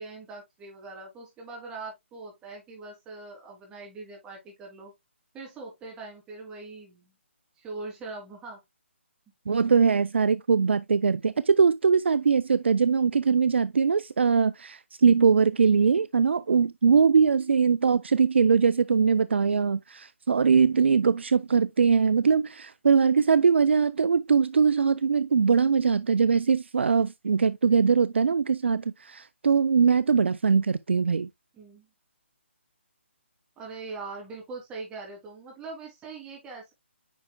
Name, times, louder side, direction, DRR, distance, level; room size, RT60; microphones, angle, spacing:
voice 1, 0.0-4.9 5.3-7.1 7.6-8.6 31.5-31.9 33.6-36.7, right 3 dB, 10° right, 3.0 m, -41 dB
voice 2, 9.5-31.3, right 5 dB, 60° right, 0.4 m, -22 dB
9.1 x 5.6 x 2.2 m
figure-of-eight pair, 145°, 7 cm